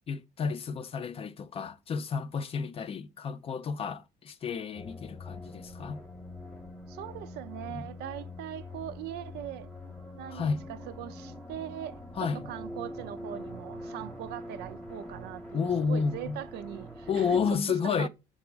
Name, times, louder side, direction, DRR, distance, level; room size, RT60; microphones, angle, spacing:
voice 1, 0.1-6.0 7.7-7.8 10.3-10.6 12.2-12.4 15.5-16.4 17.1-18.1, left 6 dB, 35° left, 0.4 m, -31 dB
sound 1, 4.7-17.5, left 1 dB, 5° left, 0.9 m, -43 dB
voice 2, 6.9-9.7 10.1-17.4 17.7-18.1, right 12 dB, 75° right, 0.4 m, -41 dB
6.0 x 2.0 x 4.4 m
cardioid pair, 110°, 17 cm